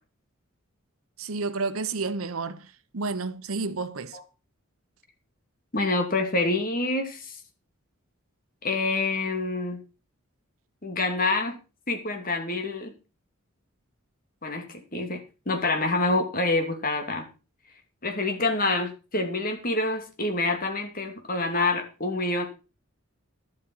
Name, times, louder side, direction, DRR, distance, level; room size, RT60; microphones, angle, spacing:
voice 1, 1.2-4.2, right 3 dB, 80° right, 1.0 m, -31 dB
voice 2, 5.7-7.3 8.6-9.8 10.8-11.6 11.9-12.9 14.4-17.3 18.0-22.4, left 2 dB, 40° left, 2.8 m, -27 dB
12.0 x 12.0 x 4.7 m
head